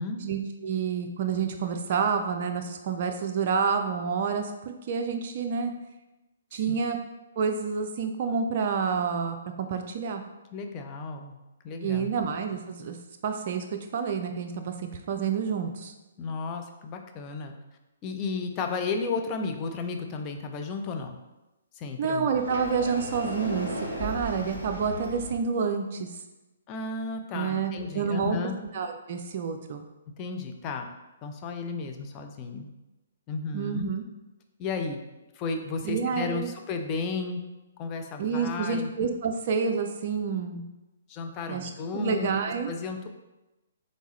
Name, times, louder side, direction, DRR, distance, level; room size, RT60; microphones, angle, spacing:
voice 1, 0.2-4.5 4.9-5.7 6.5-7.0 7.4-10.2 11.8-13.0 13.2-15.9 22.0-23.7 24.0-26.1 27.3-29.9 33.5-34.0 35.8-36.5 38.2-40.6 41.5-42.7, right 6 dB, 40° right, 4 dB, 0.3 m, -28 dB
voice 2, 10.5-11.3 11.6-12.1 16.2-17.5 18.0-21.2 21.8-22.3 26.7-28.6 30.2-30.9 31.2-32.7 33.3-33.9 34.6-35.0 35.4-37.4 37.8-38.9 41.1-42.3 42.7-43.1, left 4 dB, 25° left, 4 dB, 0.5 m, -33 dB
Sliding door, 22.3-25.3, equal, 90° left, 1.3 m, -35 dB
3.8 x 3.5 x 3.1 m, 1.0 s
figure-of-eight pair, 125°, 0 cm